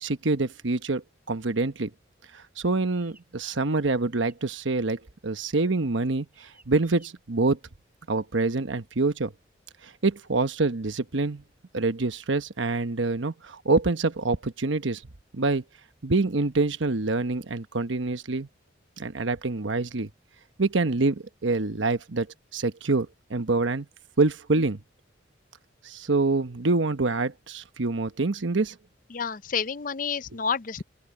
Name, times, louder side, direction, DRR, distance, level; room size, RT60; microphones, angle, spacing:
voice 1, 0.0-1.9 2.3-7.6 8.1-9.3 9.8-11.4 11.7-15.0 15.3-15.6 16.0-18.5 19.0-20.1 20.6-22.3 22.5-23.9 24.2-24.8 25.8-28.8, right 3 dB, 75° right, 1.1 m, -26 dB
sound 1, 2.9-3.3 4.1-4.5 4.8-5.1 5.6-5.9 6.3-7.1, right 2 dB, 10° right, 6.8 m, -59 dB
voice 2, 29.1-30.8, left 6 dB, 45° left, 0.5 m, -29 dB
open air
head